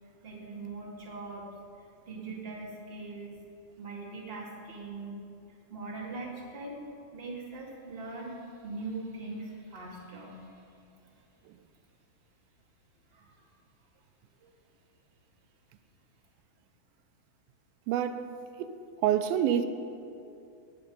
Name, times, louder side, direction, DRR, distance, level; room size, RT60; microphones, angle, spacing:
voice 1, 0.2-1.5 1.8-3.4 3.8-5.2 5.5-6.8 7.1-10.7 13.1-13.5 14.4-14.5, right 3 dB, 30° right, 1.2 m, -41 dB
voice 2, 17.9-18.3 18.6-18.7 19.0-19.7, right 10 dB, 80° right, 2.4 m, -26 dB
18.5 x 7.5 x 5.3 m
omnidirectional pair, 4.3 m